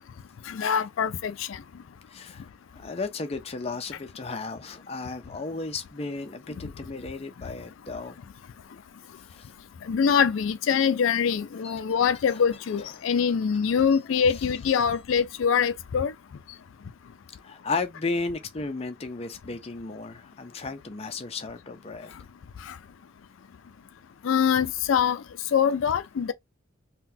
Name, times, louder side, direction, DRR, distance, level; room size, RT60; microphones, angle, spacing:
voice 1, 0.5-1.3 9.9-16.1 24.2-25.2 25.5-26.3, left 7 dB, 85° left, 0.4 m, -24 dB
voice 2, 2.1-8.2 9.3-9.5 11.6-12.0 12.3-12.4 13.0-13.4 13.7-14.0 14.3-14.4 17.4-22.2, left 3 dB, 30° left, 0.5 m, -35 dB
3.8 x 2.3 x 2.7 m
head